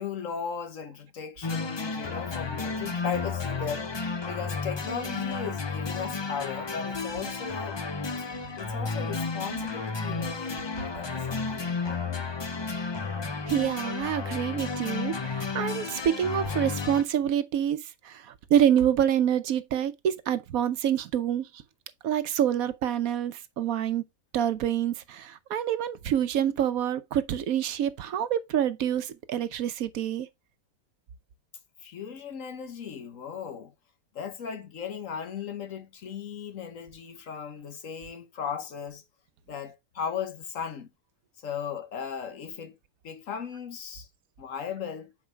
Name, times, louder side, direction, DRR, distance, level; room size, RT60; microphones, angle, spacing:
voice 1, 0.0-7.8 8.2-8.3 8.6-12.2 31.8-33.7 34.1-39.0 39.5-40.9 41.4-42.7 43.0-44.1 44.4-45.1, left 7 dB, 60° left, 1.3 m, -37 dB
sound 1, 1.4-17.0, left 4 dB, 45° left, 0.3 m, -32 dB
voice 2, 13.5-21.5 22.0-24.0 24.3-30.3, right 10 dB, 70° right, 1.1 m, -27 dB
7.3 x 4.7 x 3.3 m
omnidirectional pair, 1.6 m